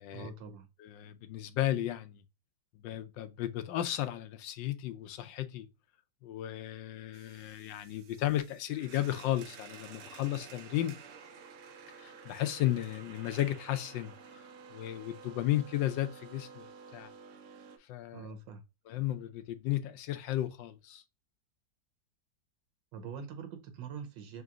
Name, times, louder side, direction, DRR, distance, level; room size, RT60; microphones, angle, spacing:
voice 1, 0.1-0.7 18.1-18.6 22.9-24.4, right 6 dB, 85° right, 1.4 m, -44 dB
voice 2, 0.8-2.2 2.8-5.7 6.2-11.0 12.0-14.4 14.7-17.1 17.9-18.3 18.9-21.0, left 13 dB, 80° left, 1.3 m, -34 dB
sound 1, 7.1-17.8, right 6 dB, 65° right, 0.8 m, -51 dB
3.9 x 2.9 x 3.5 m
omnidirectional pair, 2.0 m